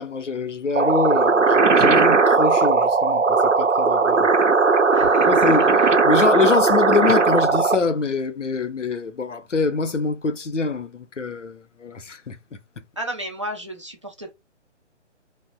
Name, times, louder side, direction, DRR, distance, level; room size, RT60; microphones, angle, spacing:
voice 1, 0.0-4.3 5.2-12.8, left 4 dB, 80° left, 0.6 m, -25 dB
sound 1, 0.8-7.8, right 4 dB, 85° right, 0.7 m, -17 dB
voice 2, 4.9-5.5 5.8-5.9 13.0-14.3, equal, 25° right, 0.4 m, -33 dB
2.8 x 2.0 x 2.6 m
figure-of-eight pair, 145°, 36 cm